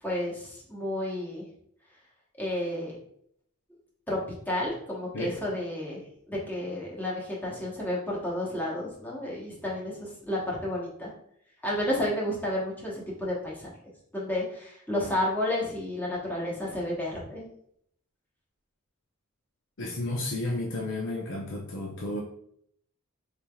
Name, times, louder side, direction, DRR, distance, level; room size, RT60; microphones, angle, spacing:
voice 1, 0.0-1.5 2.4-3.0 4.1-4.2 4.5-6.0 6.3-11.1 11.6-13.7 14.1-17.5, left 1 dB, 10° left, -5 dB, 1.0 m, -31 dB
voice 2, 19.8-22.2, left 2 dB, 60° left, -2 dB, 0.6 m, -32 dB
4.3 x 3.3 x 2.3 m, 0.69 s
head